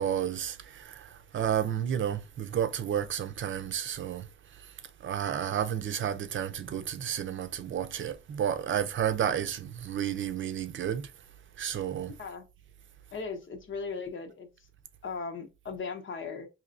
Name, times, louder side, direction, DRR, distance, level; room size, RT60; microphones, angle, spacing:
voice 1, 0.0-4.3 5.0-11.1 11.6-12.1, right 9 dB, 75° right, 0.5 m, -31 dB
voice 2, 13.1-14.5 15.0-16.5, left 4 dB, 80° left, 0.8 m, -37 dB
4.2 x 2.7 x 2.5 m
cardioid pair, 75°, 20 cm